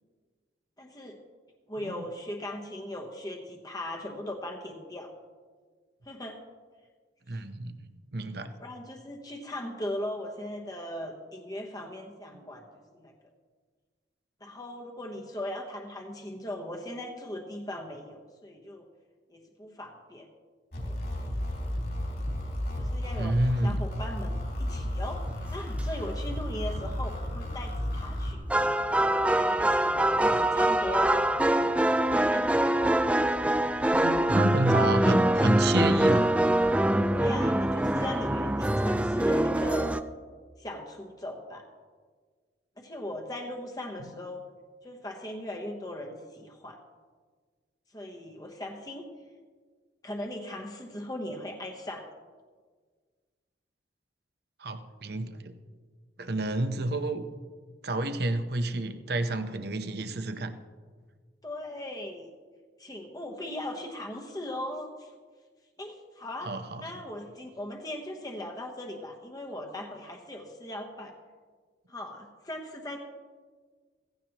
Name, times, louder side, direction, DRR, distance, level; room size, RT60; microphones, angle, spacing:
voice 1, 0.8-1.2 1.7-5.1 6.0-6.4 7.3-7.4 8.6-13.1 14.4-18.8 19.3-20.3 20.9-21.0 22.8-23.4 23.6-28.4 28.9-31.1 32.1-32.5 37.1-40.0 40.6-41.6 42.8-44.4 44.8-46.8 47.9-49.1 50.0-52.1 61.4-62.3 62.8-65.1 65.8-71.1 71.9-73.0, left 1 dB, 20° left, 2 dB, 1.1 m, -38 dB
voice 2, 7.3-8.5 12.3-12.4 20.8-20.9 23.2-23.8 30.2-30.4 33.9-36.3 44.0-44.1 54.6-55.6 56.2-57.3 57.8-60.5 66.4-66.9, right 2 dB, 60° right, 8 dB, 0.9 m, -30 dB
sound 1, 20.7-28.3, left 1 dB, 55° left, 3.6 m, -33 dB
sound 2, 25.8-26.1 26.6-26.7 28.2-28.3 28.5-40.0, right 1 dB, 5° right, 0.4 m, -24 dB
16.0 x 16.0 x 3.0 m, 1.6 s
head